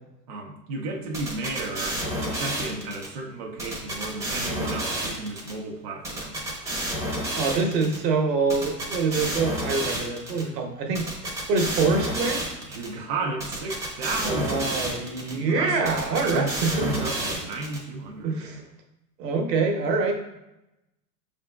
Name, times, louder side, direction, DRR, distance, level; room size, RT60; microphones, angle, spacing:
voice 1, 0.3-6.4 12.6-14.9 15.3-18.6, right 3 dB, 25° right, -1 dB, 0.3 m, -33 dB
sound 1, 1.1-3.1 3.6-5.5 6.0-8.0 8.5-10.4 10.9-12.9 13.4-15.3 15.8-17.8, right 1 dB, 5° right, 0.7 m, -30 dB
voice 2, 7.3-11.0 11.5-12.4 14.2-16.9 18.2-18.6 19.2-20.1, right 4 dB, 70° right, 3 dB, 1.1 m, -25 dB
5.0 x 3.7 x 2.2 m, 0.91 s
hypercardioid pair, 120°, 50 cm